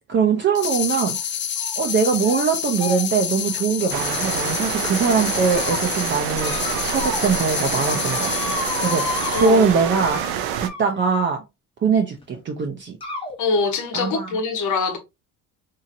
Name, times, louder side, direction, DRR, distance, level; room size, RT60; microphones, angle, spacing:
voice 1, 0.1-1.2 1.8-6.6 6.8-10.2 10.6-11.4 11.8-13.0 13.9-14.3, right 5 dB, 35° right, 0.6 m, -22 dB
sound 1, 0.5-9.7, left 9 dB, 35° left, 0.5 m, -28 dB
sound 2, 0.9-1.2 1.6-1.9 2.2-2.4 2.8-4.7 5.2-5.8 6.4-7.4 7.6-11.2 12.2-12.3 13.0-13.3, left 2 dB, 15° left, 0.9 m, -33 dB
sound 3, 3.9-10.7, right 10 dB, 90° right, 0.5 m, -27 dB
voice 2, 9.3-10.0 13.4-15.0, left 4 dB, 70° left, 1.0 m, -24 dB
2.8 x 2.8 x 2.5 m
cardioid pair, 95°, 33 cm